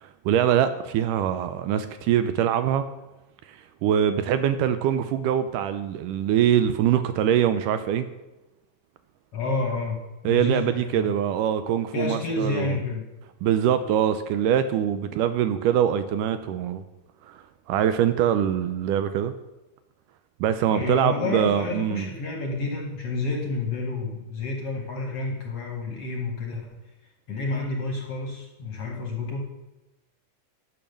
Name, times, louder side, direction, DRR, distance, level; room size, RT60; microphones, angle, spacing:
voice 1, 0.0-2.9 3.5-8.1 10.3-12.7 13.4-16.8 17.3-17.4 17.7-19.3 20.4-22.1, right 9 dB, 80° right, 10 dB, 2.0 m, -23 dB
voice 2, 9.3-11.1 11.9-13.1 20.7-26.7 27.3-29.4, left 3 dB, 60° left, 2 dB, 1.7 m, -30 dB
11.0 x 6.8 x 6.4 m, 1.0 s
omnidirectional pair, 3.9 m